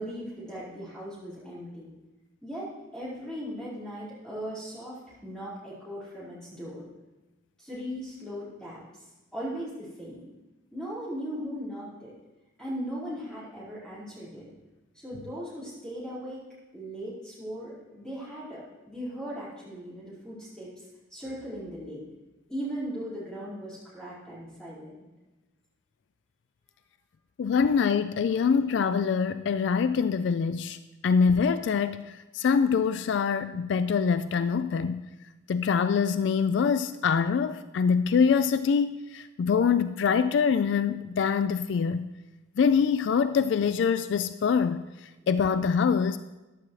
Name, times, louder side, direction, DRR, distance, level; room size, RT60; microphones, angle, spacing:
voice 1, 0.0-1.9 2.4-6.8 7.6-8.8 9.3-10.3 10.7-12.1 12.6-14.5 14.9-16.4 16.7-20.7 21.1-22.0 22.5-25.0, equal, 5° left, -9 dB, 4.5 m, -38 dB
voice 2, 27.4-30.8 31.0-35.0 35.5-42.1 42.6-44.8 45.3-46.2, left 6 dB, 65° left, 12 dB, 0.3 m, -24 dB
14.0 x 11.0 x 3.2 m, 1.1 s
head